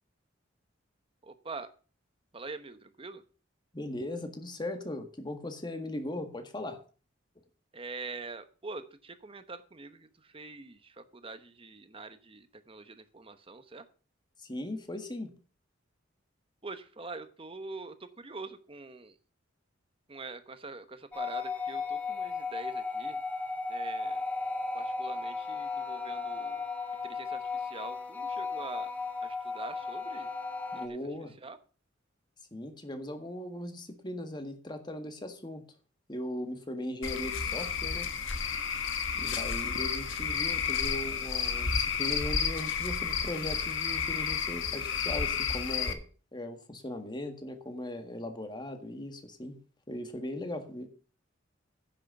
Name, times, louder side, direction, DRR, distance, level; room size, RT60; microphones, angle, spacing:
voice 1, 1.2-1.7 2.3-3.2 7.7-13.8 16.6-19.1 20.1-23.2 23.7-24.2 24.7-26.6 27.0-28.9 29.2-30.3 30.7-31.0 31.4-31.6 39.2-39.4, right 3 dB, 30° right, 10 dB, 1.0 m, -44 dB
voice 2, 3.7-6.8 14.4-15.3 30.7-31.3 32.5-35.6 36.1-38.1 39.2-46.0 46.3-49.6 49.9-50.9, left 1 dB, 25° left, 6 dB, 1.7 m, -38 dB
sound 1, 21.1-30.9, left 4 dB, 10° left, 1.3 m, -35 dB
Cricket / Frog, 37.0-45.9, left 6 dB, 75° left, 1.4 m, -31 dB
10.0 x 6.6 x 6.6 m, 0.38 s
head